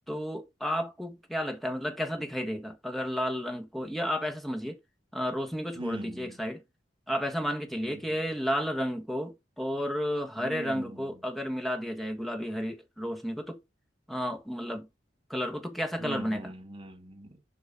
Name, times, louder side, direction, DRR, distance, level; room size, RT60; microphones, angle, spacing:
voice 1, 0.1-4.8 5.1-6.6 7.1-13.6 14.1-14.9 15.3-16.5, equal, ahead, 1.6 m, -32 dB
voice 2, 5.7-6.4 7.7-8.0 10.4-11.1 16.0-17.4, right 1 dB, 25° right, 2.2 m, -41 dB
7.3 x 5.4 x 4.1 m
head